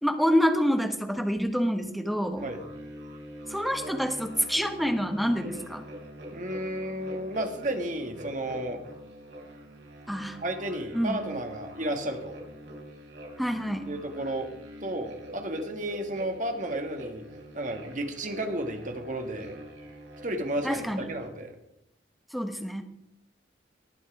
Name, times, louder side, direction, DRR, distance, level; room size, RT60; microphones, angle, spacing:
voice 1, 0.0-2.5 3.5-5.8 10.1-10.4 10.9-11.2 13.4-13.9 20.6-21.1 22.3-22.8, equal, ahead, 5 dB, 1.2 m, -27 dB
sound 1, 2.3-21.3, equal, 80° right, 4.0 m, -45 dB
voice 2, 6.3-8.8 10.4-12.4 13.8-14.5 14.8-17.2 17.5-19.6 20.2-21.6, right 1 dB, 45° right, 5 dB, 1.9 m, -32 dB
19.0 x 8.5 x 4.9 m, 0.80 s
head